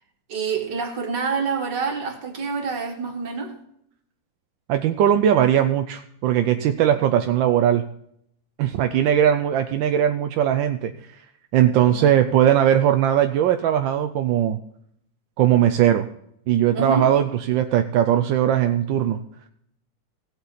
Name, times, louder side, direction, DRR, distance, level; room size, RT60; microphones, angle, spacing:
voice 1, 0.3-3.5 11.9-12.2 16.7-17.1, right 5 dB, 50° right, 3 dB, 2.3 m, -27 dB
voice 2, 4.7-7.8 8.6-10.9 11.5-14.6 15.4-16.1 16.5-19.2, right 10 dB, 70° right, 7 dB, 1.2 m, -19 dB
17.0 x 8.0 x 4.1 m, 0.71 s
omnidirectional pair, 2.4 m